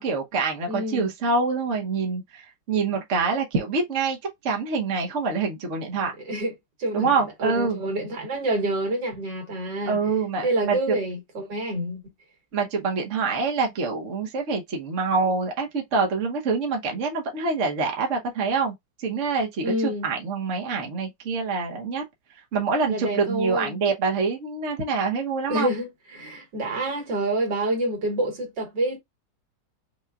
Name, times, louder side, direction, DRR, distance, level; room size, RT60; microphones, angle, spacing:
voice 1, 0.0-4.2 4.4-6.1 6.9-7.8 9.8-10.9 12.5-18.7 19.0-22.0 22.5-25.7, right 4 dB, 45° right, 1.2 m, -26 dB
voice 2, 0.7-1.1 6.2-6.5 6.8-7.1 7.4-10.0 10.4-12.0 19.6-20.1 22.9-23.8 25.5-29.0, right 1 dB, 70° right, 2.4 m, -27 dB
5.7 x 2.3 x 2.4 m
omnidirectional pair, 2.0 m